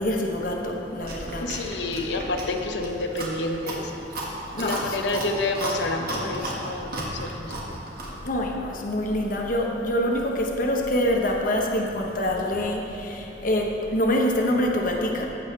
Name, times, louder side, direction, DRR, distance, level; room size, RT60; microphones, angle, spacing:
voice 1, 0.0-1.4 4.5-4.8 5.1-5.2 8.2-15.3, left 1 dB, 50° left, 1 dB, 1.0 m, -25 dB
Chewing mastication, 1.0-8.2, right 1 dB, 55° right, 1.6 m, -34 dB
voice 2, 1.4-3.9 4.6-7.5, left 2 dB, 80° left, 4 dB, 0.8 m, -29 dB
15.5 x 7.2 x 3.3 m, 3.0 s
head